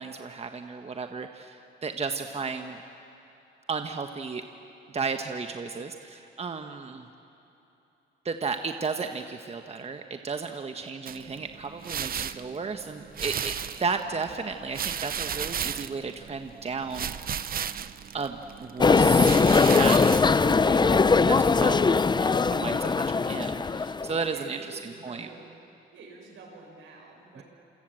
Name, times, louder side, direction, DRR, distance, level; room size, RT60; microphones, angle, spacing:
voice 1, 0.0-2.8 3.7-4.4 4.9-7.1 8.2-17.4 18.1-25.3 27.4-27.5, right 5 dB, 30° right, 6 dB, 1.3 m, -34 dB
sound 1, 11.1-21.1, right 8 dB, 45° right, 0.8 m, -35 dB
sound 2, 18.8-24.2, left 4 dB, 20° left, 0.6 m, -21 dB
voice 2, 24.2-25.6 25.9-27.4, right 3 dB, 80° right, 0 dB, 7.6 m, -48 dB
28.0 x 27.0 x 7.7 m, 3.0 s
cardioid pair, 90°, 20 cm